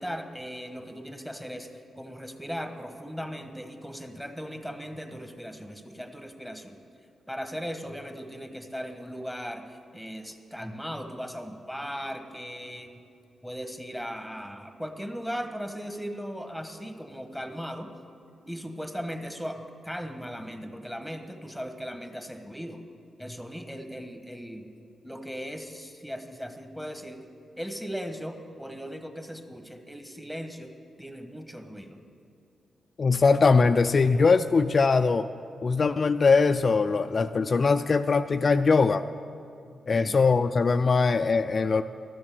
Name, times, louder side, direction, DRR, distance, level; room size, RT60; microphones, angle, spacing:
voice 1, 0.0-6.8 7.3-13.0 13.4-17.9 18.5-22.8 23.2-24.7 25.0-27.2 27.6-30.7 31.0-32.0 39.9-40.2, equal, 5° right, 6 dB, 1.4 m, -38 dB
voice 2, 33.0-35.3 35.6-39.1 39.9-41.8, left 4 dB, 50° left, 9 dB, 0.3 m, -21 dB
12.5 x 7.1 x 6.9 m, 2.5 s
hypercardioid pair, 40°, 0 cm